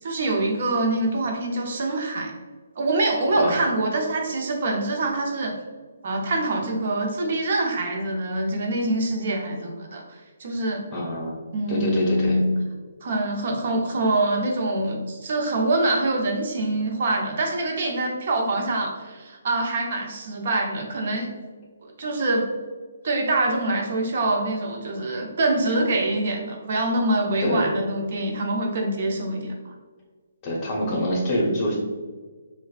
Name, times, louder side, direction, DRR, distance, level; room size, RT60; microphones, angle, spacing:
voice 1, 0.0-2.3 2.8-5.6 6.0-10.8 11.5-12.5 13.0-21.3 21.8-22.5 23.0-29.7, right 2 dB, 55° right, 1 dB, 0.6 m, -25 dB
voice 2, 10.9-11.3 11.7-12.4 27.4-27.7 30.4-31.8, equal, 25° left, -3 dB, 1.1 m, -25 dB
4.8 x 2.2 x 2.5 m, 1.4 s
hypercardioid pair, 150°, 0 cm